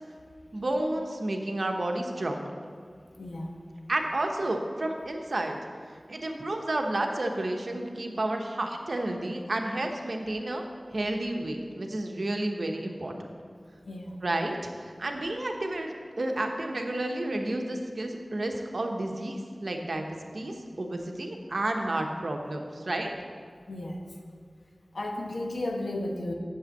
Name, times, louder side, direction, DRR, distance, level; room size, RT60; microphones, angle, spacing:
voice 1, 0.5-2.5 3.9-5.6 6.1-10.6 10.9-13.1 14.2-23.1, right 1 dB, 70° right, 3 dB, 1.0 m, -31 dB
voice 2, 3.2-3.5 13.9-14.2 20.5-20.6 23.7-24.0 24.9-26.3, left 1 dB, 85° left, 2 dB, 1.0 m, -34 dB
7.8 x 5.6 x 7.7 m, 2.2 s
wide cardioid pair, 55°, 0 cm